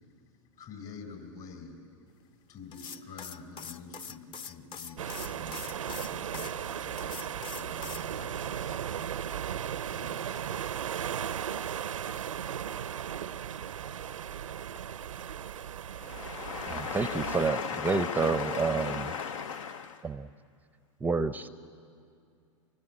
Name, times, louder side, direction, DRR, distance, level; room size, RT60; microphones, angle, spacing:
voice 1, 0.6-1.8 2.5-10.8 12.5-15.7, left 4 dB, 45° left, 4.6 m, -50 dB
sound 1, 2.7-6.5 7.0-8.1, left 6 dB, 30° left, 0.7 m, -43 dB
sound 2, 5.0-17.5, right 9 dB, 90° right, 0.5 m, -36 dB
voice 2, 15.9-20.1, left 6 dB, 80° left, 0.6 m, -36 dB
voice 3, 16.7-17.6 17.8-19.0 20.0-20.3 21.0-21.5, right 4 dB, 10° right, 0.5 m, -29 dB
24.0 x 19.5 x 8.9 m
hypercardioid pair, 105°, 16 cm